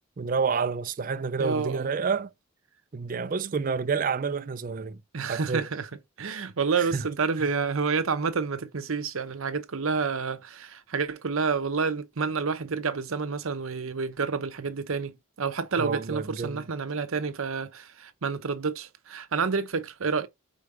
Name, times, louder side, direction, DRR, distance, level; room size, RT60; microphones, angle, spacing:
voice 1, 0.2-2.3 2.9-5.0 5.3-5.6 6.8-7.0 7.4-7.5 15.8-16.6, right 5 dB, 40° right, 0.4 m, -29 dB
voice 2, 1.4-1.9 5.1-5.9 6.2-20.3, right 5 dB, 75° right, 0.8 m, -29 dB
5.0 x 4.6 x 4.9 m
head